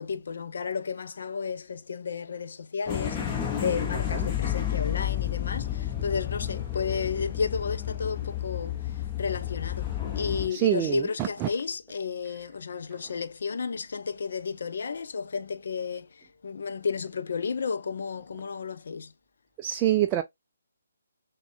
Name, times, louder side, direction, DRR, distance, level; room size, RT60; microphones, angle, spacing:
voice 1, 0.0-19.1, left 5 dB, 60° left, 0.4 m, -33 dB
sound 1, 2.9-10.5, left 11 dB, 20° left, 0.9 m, -31 dB
voice 2, 10.5-11.5 19.6-20.2, right 12 dB, 20° right, 0.3 m, -26 dB
6.1 x 2.2 x 2.4 m
figure-of-eight pair, 150°, 0 cm